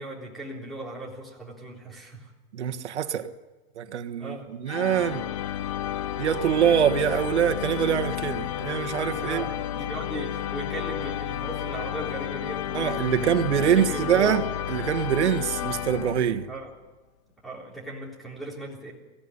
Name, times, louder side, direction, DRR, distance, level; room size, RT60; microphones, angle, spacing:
voice 1, 0.0-2.3 4.2-4.5 9.2-14.5 16.5-16.7 17.4-18.9, right 1 dB, ahead, 3.5 m, -38 dB
voice 2, 2.5-3.3 3.8-5.3 6.2-9.4 12.7-16.5, right 9 dB, 85° right, 1.5 m, -24 dB
sound 1, 4.7-16.6, left 11 dB, 30° left, 0.7 m, -32 dB
23.5 x 16.0 x 9.8 m
hypercardioid pair, 165°, 33 cm